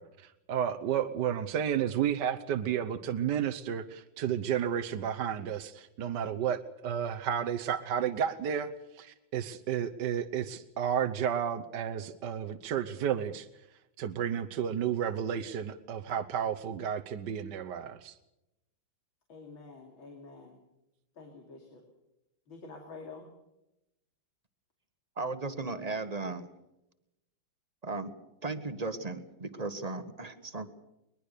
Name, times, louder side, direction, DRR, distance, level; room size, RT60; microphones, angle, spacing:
voice 1, 0.0-13.5 14.0-18.2, right 9 dB, 65° right, 8 dB, 1.5 m, -32 dB
voice 2, 19.3-20.6 21.2-21.8 22.5-23.3, left 3 dB, 90° left, 2 dB, 3.5 m, -48 dB
voice 3, 25.2-26.5 27.8-28.1 28.4-30.7, right 3 dB, 20° right, 10 dB, 1.3 m, -36 dB
21.5 x 21.5 x 6.8 m, 0.91 s
omnidirectional pair, 2.1 m